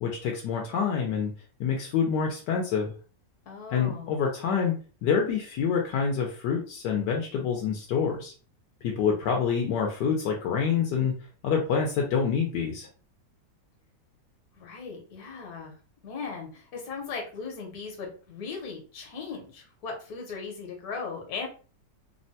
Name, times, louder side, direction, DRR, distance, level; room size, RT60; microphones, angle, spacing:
voice 1, 0.0-1.3 1.6-2.9 3.7-4.7 5.0-8.3 8.8-11.1 11.4-12.9, left 6 dB, 80° left, 0 dB, 1.2 m, -27 dB
voice 2, 3.5-4.2 14.6-15.7 16.0-21.5, left 5 dB, 65° left, 0 dB, 1.3 m, -38 dB
3.4 x 2.1 x 2.7 m, 0.37 s
omnidirectional pair, 1.9 m